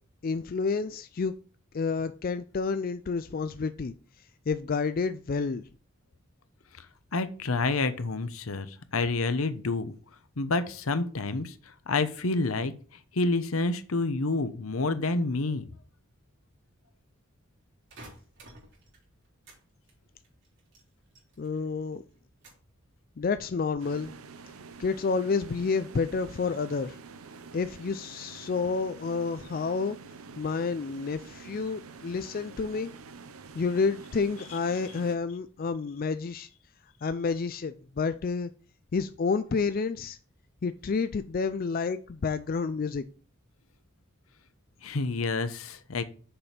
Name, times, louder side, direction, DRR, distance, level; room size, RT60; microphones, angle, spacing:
voice 1, 0.2-1.3 1.7-3.9 4.5-5.7 21.4-22.0 23.2-24.1 24.8-27.0 27.5-30.0 30.4-32.9 33.5-36.5 37.0-38.5 38.9-40.2 40.6-43.0, left 4 dB, 45° left, 0.4 m, -29 dB
voice 2, 7.1-9.9 10.4-15.6 44.8-46.0, left 3 dB, 80° left, 0.9 m, -29 dB
sound 1, 17.9-19.6 19.9-21.7 21.9-22.7 23.2-23.7, right 2 dB, 55° right, 3.6 m, -52 dB
sound 2, 23.8-35.2, right 4 dB, 90° right, 0.7 m, -47 dB
6.8 x 5.2 x 5.8 m
head